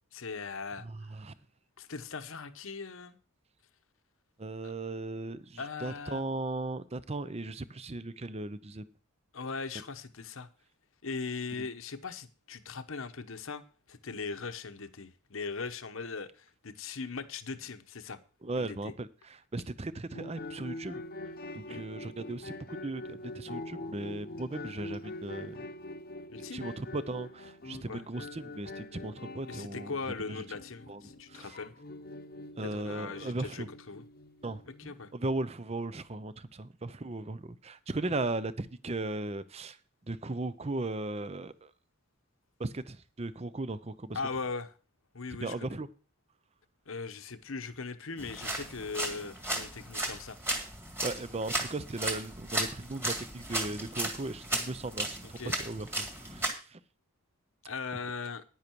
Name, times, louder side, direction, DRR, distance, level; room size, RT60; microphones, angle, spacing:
voice 1, 0.1-0.9 1.8-3.2 4.6-4.7 5.6-6.2 9.3-10.5 11.0-13.6 13.9-18.2 18.6-18.8 21.7-21.8 26.3-26.7 27.9-28.0 29.5-31.7 32.6-34.0 34.8-35.1 44.1-44.7 45.1-45.8 46.9-50.4 55.4-55.6 57.7-58.4, left 4 dB, 70° left, 1.0 m, -39 dB
voice 2, 0.8-1.3 4.4-8.9 11.6-11.7 18.4-21.0 21.5-25.6 26.4-30.4 30.9-31.0 31.3-31.6 32.6-33.7 34.4-39.8 40.1-41.7 42.6-44.2 45.4-45.9 51.0-56.8, right 2 dB, 30° right, 0.6 m, -37 dB
sound 1, 20.1-35.6, left 2 dB, 45° left, 0.9 m, -44 dB
sound 2, 48.2-56.5, right 1 dB, 10° right, 2.0 m, -35 dB
10.5 x 9.8 x 4.6 m
head